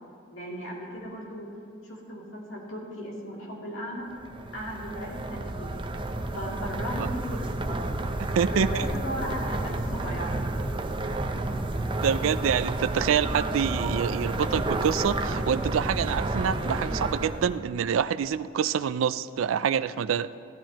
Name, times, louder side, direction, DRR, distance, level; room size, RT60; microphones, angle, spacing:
voice 1, 0.3-1.5 1.8-4.1 4.5-5.8 6.3-7.9 8.5-10.4, equal, 70° left, -3 dB, 2.7 m, -36 dB
sound 1, 4.1-17.6, right 2 dB, 25° right, 0.5 m, -30 dB
voice 2, 8.2-8.9 12.0-20.3, right 7 dB, 75° right, 15 dB, 0.3 m, -26 dB
16.5 x 13.0 x 3.0 m, 2.4 s
head